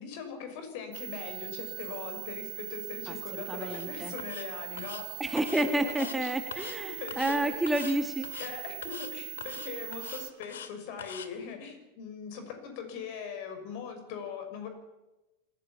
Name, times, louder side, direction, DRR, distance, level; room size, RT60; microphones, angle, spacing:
voice 1, 0.0-5.0 5.6-6.3 6.6-7.5 8.4-14.7, left 6 dB, 45° left, 7 dB, 6.1 m, -41 dB
sound 1, 0.9-10.3, right 30 dB, 45° right, 1.4 m, -41 dB
voice 2, 3.1-4.1 5.2-8.4, right 1 dB, 5° right, 7 dB, 1.8 m, -30 dB
sound 2, 3.6-3.9 4.2-4.5 4.8-5.0 5.4-6.2 6.5-6.8 7.1-7.4 7.7-8.0 8.2-8.5 8.8-9.1 9.4-10.7 11.0-11.3, left 8 dB, 65° left, 2.1 m, -43 dB
26.5 x 15.5 x 8.8 m, 1.0 s
figure-of-eight pair, 90°, 0 cm